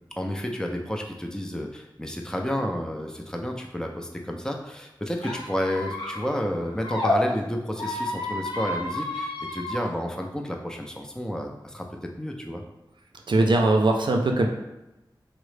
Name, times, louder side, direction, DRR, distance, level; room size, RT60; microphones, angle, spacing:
voice 1, 0.2-11.9 12.2-12.6, equal, 10° left, 2 dB, 0.4 m, -31 dB
Squeak, 5.2-7.2 7.7-9.8, left 2 dB, 80° left, 0.7 m, -31 dB
voice 2, 13.3-14.5, right 2 dB, 70° right, 3 dB, 0.4 m, -20 dB
3.6 x 2.0 x 3.2 m, 0.98 s
wide cardioid pair, 70°, 8 cm